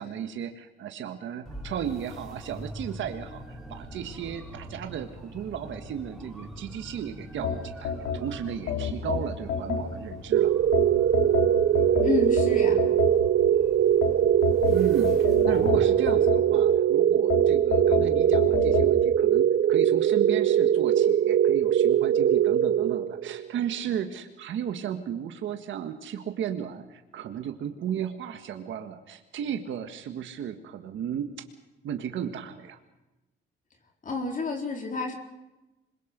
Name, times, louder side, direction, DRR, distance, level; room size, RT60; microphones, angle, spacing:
voice 1, 0.0-10.5 14.7-31.3 31.8-32.8, right 9 dB, 75° right, 6 dB, 1.7 m, -35 dB
sound 1, 1.4-15.9, equal, ahead, 6.4 m, -44 dB
sound 2, 7.4-10.2 10.7-13.5 14.0-16.8 17.3-18.9, left 7 dB, 85° left, 3.7 m, -30 dB
sound 3, 10.3-23.5, right 10 dB, 60° right, 0.7 m, -22 dB
voice 2, 12.0-12.8 34.0-35.1, left 4 dB, 40° left, 2 dB, 4.1 m, -29 dB
26.0 x 22.0 x 5.3 m, 1.0 s
cardioid pair, 90°, 20 cm